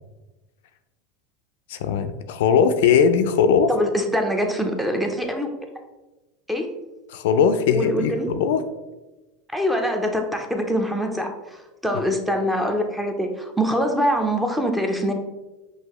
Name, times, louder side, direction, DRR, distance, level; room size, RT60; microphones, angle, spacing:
voice 1, 1.7-3.7 7.1-8.6, left 6 dB, 80° left, 9 dB, 0.4 m, -19 dB
voice 2, 3.7-5.5 6.5-6.7 7.7-8.3 9.5-15.1, equal, 5° right, 4 dB, 0.6 m, -24 dB
5.4 x 2.8 x 3.0 m, 1.1 s
supercardioid pair, 130°, 0 cm